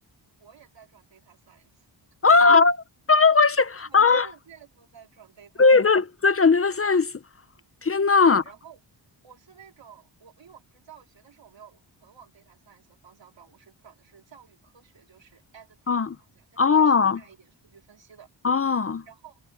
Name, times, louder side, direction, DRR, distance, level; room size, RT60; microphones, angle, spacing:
voice 1, 0.4-1.9 3.9-6.0 8.2-8.8 9.2-18.3 19.1-19.4, right 8 dB, 80° right, 4.3 m, -52 dB
voice 2, 2.2-4.3 5.6-7.2 7.8-8.4 15.9-16.2 16.6-17.2 18.4-19.0, left 4 dB, 30° left, 0.6 m, -19 dB
wide cardioid pair, 140°, 44 cm